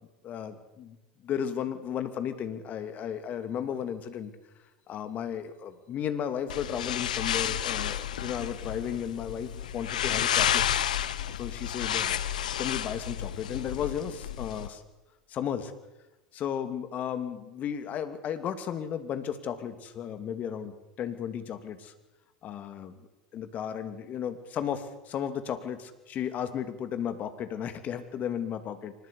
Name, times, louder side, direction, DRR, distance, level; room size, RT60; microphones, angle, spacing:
voice 1, 0.2-1.0 1.2-4.3 4.9-10.6 11.3-14.8 15.3-15.7 16.3-20.7 21.0-21.9 22.4-22.9 23.3-28.9, left 8 dB, 40° left, 10 dB, 2.8 m, -34 dB
sound 1, 6.5-14.7, left 10 dB, 80° left, 1.2 m, -31 dB
24.5 x 20.5 x 8.6 m, 1.1 s
hypercardioid pair, 85°, 4 cm